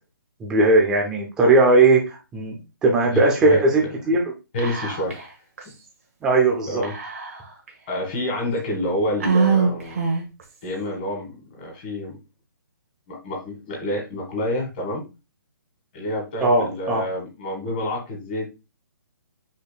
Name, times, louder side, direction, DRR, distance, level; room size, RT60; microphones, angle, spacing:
voice 1, 0.4-4.2 6.2-6.8 16.4-17.0, right 2 dB, 5° right, 0 dB, 0.5 m, -18 dB
voice 2, 3.1-3.9 4.5-5.2 6.7-6.9 7.9-10.0 10.6-12.1 13.1-15.0 15.9-18.5, left 1 dB, 25° left, 0 dB, 1.7 m, -28 dB
Whispering, 4.6-5.3 5.6-5.7 6.8-7.7 8.3-8.4 9.2-10.4, right 5 dB, 40° right, 1.1 m, -23 dB
5.1 x 4.3 x 2.2 m, 0.28 s
hypercardioid pair, 175°, 12 cm